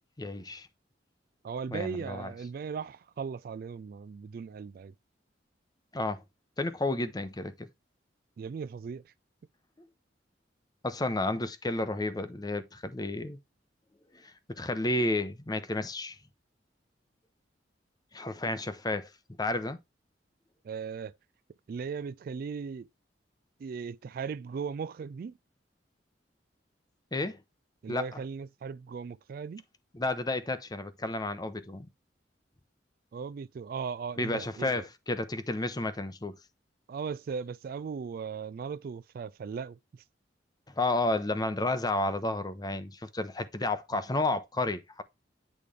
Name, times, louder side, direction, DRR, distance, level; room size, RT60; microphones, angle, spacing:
voice 1, 0.2-0.7 1.7-2.3 5.9-6.2 6.6-7.7 10.8-13.4 14.1-16.2 18.1-19.1 19.4-19.8 27.1-27.4 27.9-28.2 29.9-31.9 34.2-36.3 40.8-45.0, left 2 dB, 20° left, 0.7 m, -31 dB
voice 2, 1.4-4.9 8.4-9.1 20.6-21.2 21.7-22.9 23.6-25.3 27.8-29.6 33.1-34.8 36.9-40.0, right 6 dB, 55° right, 0.3 m, -38 dB
8.5 x 3.3 x 3.5 m
head